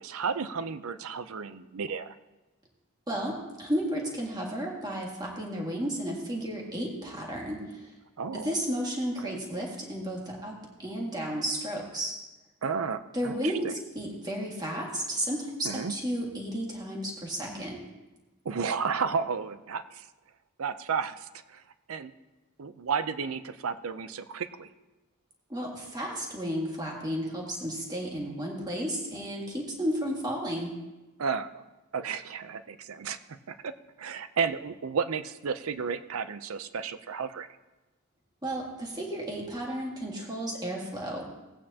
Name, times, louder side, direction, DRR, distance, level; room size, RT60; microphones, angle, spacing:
voice 1, 0.0-2.1 8.2-8.5 9.2-9.4 12.6-13.7 15.6-15.9 18.4-20.0 20.6-21.6 21.9-22.1 22.6-24.7 31.2-31.6 31.9-33.7 34.0-37.5, right 6 dB, 75° right, 12 dB, 0.5 m, -32 dB
voice 2, 3.1-7.9 8.3-12.2 13.1-17.8 25.5-30.7 38.4-41.2, equal, 20° right, -2 dB, 1.9 m, -33 dB
18.0 x 8.7 x 2.8 m, 1.1 s
head